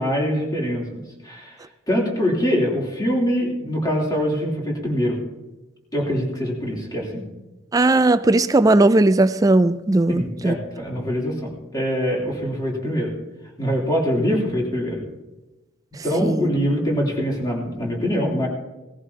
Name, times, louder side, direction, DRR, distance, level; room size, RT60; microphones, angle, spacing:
voice 1, 0.0-1.6 1.9-5.2 5.9-7.2 10.1-13.1 13.6-15.0 16.0-18.5, equal, 20° left, -3 dB, 3.1 m, -24 dB
voice 2, 7.7-10.5 16.2-16.5, right 2 dB, 20° right, 13 dB, 0.4 m, -17 dB
18.5 x 14.5 x 2.8 m, 1.1 s
head